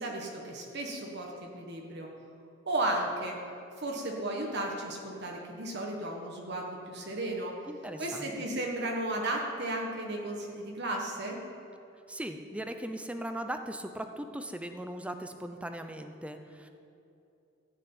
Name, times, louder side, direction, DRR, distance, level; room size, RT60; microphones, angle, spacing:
voice 1, 0.0-2.1 2.6-3.4 3.8-7.5 8.0-11.4, right 1 dB, 55° right, 0 dB, 1.5 m, -34 dB
voice 2, 7.7-8.3 12.1-16.7, right 1 dB, 5° right, 6 dB, 0.7 m, -39 dB
14.0 x 6.5 x 9.0 m, 2.7 s
head